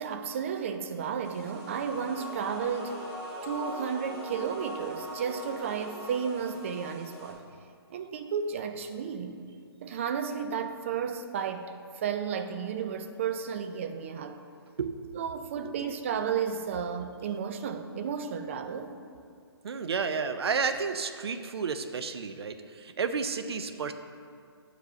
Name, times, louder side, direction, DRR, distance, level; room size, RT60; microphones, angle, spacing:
voice 1, 0.0-3.0 3.4-7.4 7.9-9.4 9.8-14.4 15.1-19.1, right 7 dB, 30° right, 8 dB, 0.4 m, -33 dB
sound 1, 1.2-7.3, equal, 5° right, 1.7 m, -41 dB
voice 2, 14.8-15.2 15.6-15.7 19.6-23.9, right 5 dB, 70° right, 9 dB, 0.6 m, -31 dB
7.9 x 5.0 x 6.7 m, 2.2 s
hypercardioid pair, 160°, 14 cm